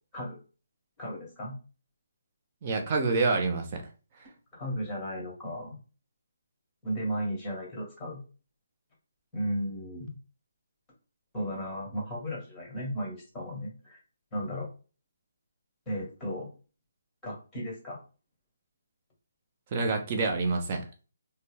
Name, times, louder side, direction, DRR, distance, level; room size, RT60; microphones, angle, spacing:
voice 1, 1.0-1.6 4.5-5.8 6.8-8.2 9.3-10.2 11.3-14.0 14.3-14.7 15.9-16.5 17.2-18.0, equal, 10° left, -2 dB, 2.0 m, -35 dB
voice 2, 2.6-3.9 19.7-20.8, right 3 dB, 35° right, 3 dB, 0.9 m, -27 dB
4.1 x 2.1 x 3.4 m, 0.35 s
figure-of-eight pair, 150°, 0 cm